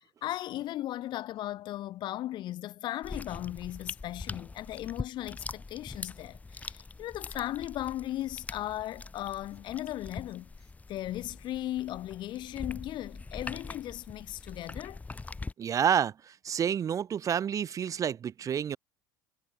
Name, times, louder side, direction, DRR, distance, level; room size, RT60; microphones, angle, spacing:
voice 1, 0.2-10.5 10.9-15.0, left 14 dB, 55° left, 1.4 m, -37 dB
sound 1, 3.0-15.5, left 3 dB, 15° left, 0.8 m, -43 dB
voice 2, 15.6-18.8, right 8 dB, 35° right, 0.7 m, -29 dB
hypercardioid pair, 75°, 9 cm